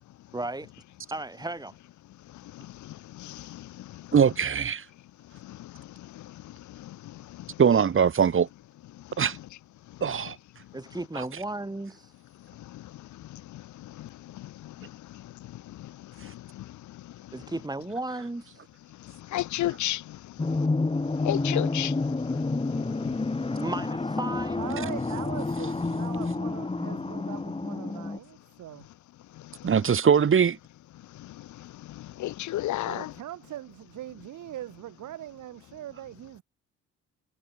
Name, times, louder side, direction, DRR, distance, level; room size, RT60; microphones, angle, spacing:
voice 1, 0.3-0.7 1.1-1.8 10.7-12.1 17.3-18.6 23.6-24.6, right 2 dB, 15° right, 5.1 m, -34 dB
voice 2, 4.1-4.8 7.6-8.5 9.2-9.4 10.0-10.4 11.2-11.3 29.6-30.6, right 7 dB, 45° right, 1.9 m, -21 dB
voice 3, 19.3-20.0 21.2-21.9 32.2-33.1, left 14 dB, 70° left, 0.8 m, -29 dB
sound 1, 20.4-28.2, left 3 dB, 20° left, 2.4 m, -29 dB
voice 4, 24.6-28.9 32.9-36.4, right 13 dB, 80° right, 5.2 m, -41 dB
cardioid pair, 90°, 30 cm